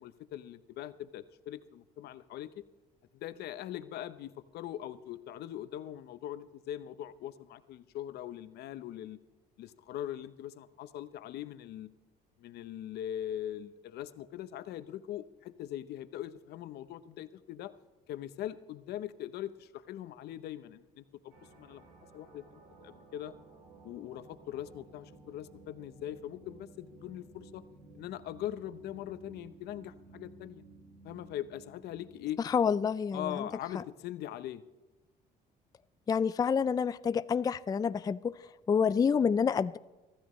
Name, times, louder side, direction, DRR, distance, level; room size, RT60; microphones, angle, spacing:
voice 1, 0.0-2.6 3.1-9.2 9.6-11.9 12.4-17.7 18.1-21.9 22.1-23.3 23.8-27.6 27.9-30.6 31.0-32.4 33.1-34.6, left 12 dB, 75° left, 13 dB, 0.8 m, -41 dB
sound 1, 21.3-33.1, right 3 dB, 70° right, 4.0 m, -56 dB
voice 2, 32.4-33.5 33.7-33.8 36.1-39.8, left 6 dB, 20° left, 14 dB, 0.4 m, -28 dB
24.0 x 13.5 x 3.2 m, 1.1 s
cardioid pair, 110°, 17 cm